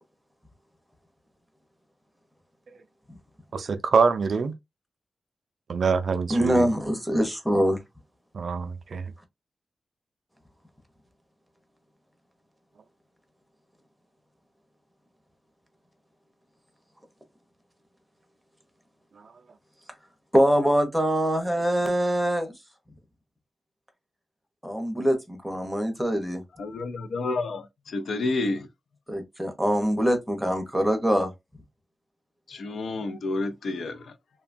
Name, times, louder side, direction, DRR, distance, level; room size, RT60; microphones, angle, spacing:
voice 1, 3.5-4.6 5.7-6.7 8.3-9.1, right 5 dB, 55° right, 0.3 m, -25 dB
voice 2, 6.3-7.8 20.3-22.5 24.6-26.4 29.1-31.3, equal, ahead, 0.7 m, -24 dB
voice 3, 26.6-28.7 32.5-34.1, left 3 dB, 65° left, 0.4 m, -30 dB
2.7 x 2.2 x 2.5 m
wide cardioid pair, 135°, 0 cm